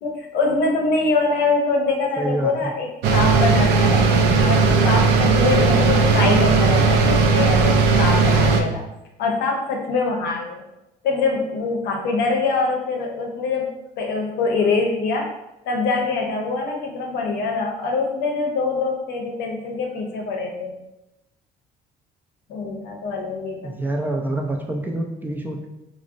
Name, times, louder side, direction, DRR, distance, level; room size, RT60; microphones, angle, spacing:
voice 1, 0.0-4.0 4.4-8.8 9.2-10.6 11.0-15.3 15.6-20.7 22.5-23.8, left 3 dB, 80° left, 1 dB, 0.6 m, -24 dB
voice 2, 2.2-2.5 23.6-25.7, right 1 dB, 10° right, 1 dB, 0.3 m, -26 dB
sound 1, 3.0-8.6, right 4 dB, 85° right, 0.4 m, -17 dB
3.6 x 2.0 x 2.5 m, 0.92 s
cardioid pair, 110°, 17 cm